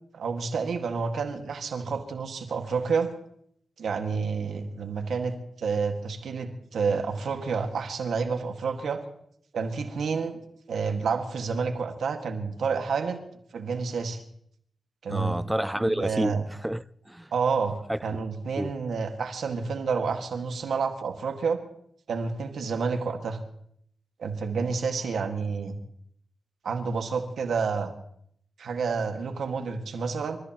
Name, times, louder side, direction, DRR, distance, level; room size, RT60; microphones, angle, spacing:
voice 1, 0.1-3.1 3.8-9.0 9.5-10.4 10.7-13.2 13.5-14.2 15.0-15.3 15.7-16.4 17.3-17.8 18.0-21.6 22.1-23.4 24.2-25.8 26.6-27.9 28.6-30.4, right 5 dB, 80° right, 1.8 m, -29 dB
voice 2, 15.1-17.3 17.9-18.2 18.6-18.7, right 1 dB, 10° right, 0.5 m, -29 dB
28.0 x 14.0 x 3.0 m
cardioid pair, 55°, 0 cm